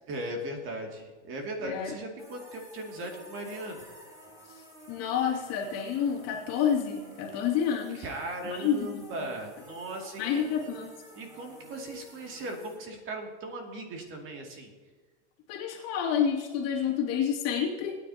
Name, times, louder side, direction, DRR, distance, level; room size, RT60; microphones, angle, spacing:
voice 1, 0.1-3.9 8.0-10.5 11.1-14.7, right 1 dB, 35° right, 2 dB, 2.6 m, -38 dB
voice 2, 1.6-2.0 4.5-4.6 4.9-8.1 8.4-9.3 10.2-10.9 15.5-18.0, left 8 dB, 45° left, 0 dB, 2.6 m, -29 dB
sound 1, 2.2-12.8, equal, 10° right, 3.4 m, -52 dB
20.0 x 9.8 x 2.9 m, 1.4 s
supercardioid pair, 130°, 34 cm